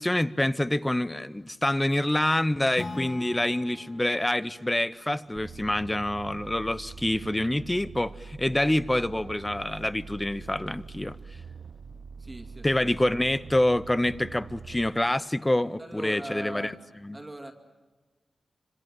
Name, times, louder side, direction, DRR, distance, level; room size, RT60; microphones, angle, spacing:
voice 1, 0.0-11.2 12.6-16.7 17.0-17.2, left 1 dB, 15° left, 0.8 m, -26 dB
Acoustic guitar / Strum, 2.8-6.2, left 2 dB, 60° left, 3.6 m, -42 dB
sound 1, 5.4-14.9, right 5 dB, 65° right, 0.7 m, -44 dB
voice 2, 12.2-12.9 15.8-16.7 17.1-17.5, right 1 dB, 20° right, 2.3 m, -40 dB
26.5 x 26.0 x 7.6 m
wide cardioid pair, 85°, 0 cm